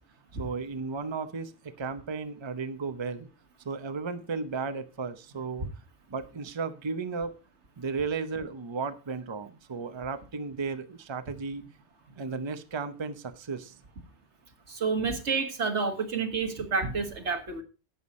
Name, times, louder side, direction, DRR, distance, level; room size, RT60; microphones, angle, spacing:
voice 1, 0.4-3.3 3.6-5.7 6.1-7.3 7.8-11.6 12.2-13.8, right 4 dB, 30° right, 10 dB, 0.7 m, -34 dB
voice 2, 14.7-17.6, right 5 dB, 85° right, 6 dB, 1.9 m, -29 dB
11.5 x 8.1 x 4.2 m, 0.32 s
omnidirectional pair, 1.1 m